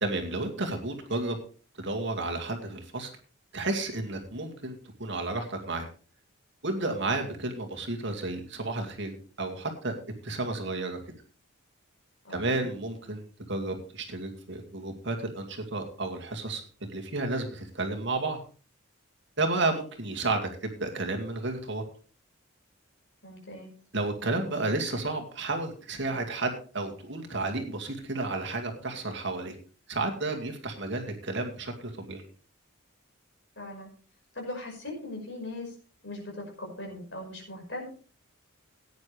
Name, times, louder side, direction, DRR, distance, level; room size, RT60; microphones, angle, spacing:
voice 1, 0.0-1.4 1.8-3.1 3.5-5.9 6.6-10.0 10.2-11.2 12.3-18.4 19.4-21.8 23.9-29.5 29.9-32.2, right 2 dB, 55° right, 3 dB, 2.2 m, -32 dB
voice 2, 12.2-12.6 23.2-23.7 33.6-33.9 34.3-35.7 36.0-37.9, left 2 dB, 55° left, 1 dB, 5.4 m, -39 dB
16.5 x 9.7 x 3.3 m, 0.39 s
head